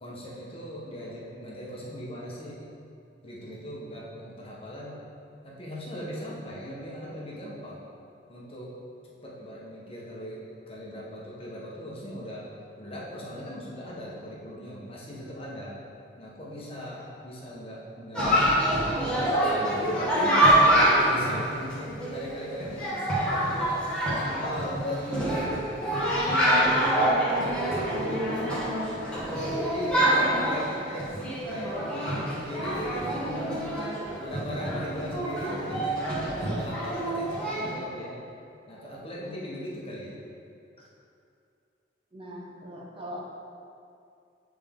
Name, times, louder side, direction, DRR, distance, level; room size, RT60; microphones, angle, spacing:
voice 1, 0.0-2.6 3.2-5.0 5.4-7.8 8.3-8.8 9.2-12.5 12.8-15.8 16.2-18.6 19.1-20.4 21.1-23.8 24.2-25.8 26.4-28.8 29.6-31.2 31.5-33.8 34.2-38.2 38.7-40.2 40.8-40.9, equal, 35° left, -5 dB, 1.1 m, -38 dB
Chatter, 18.1-37.7, right 1 dB, 5° left, 1.5 m, -26 dB
voice 2, 42.1-43.2, equal, 30° right, -4 dB, 0.8 m, -40 dB
9.3 x 3.5 x 3.6 m, 2.5 s
head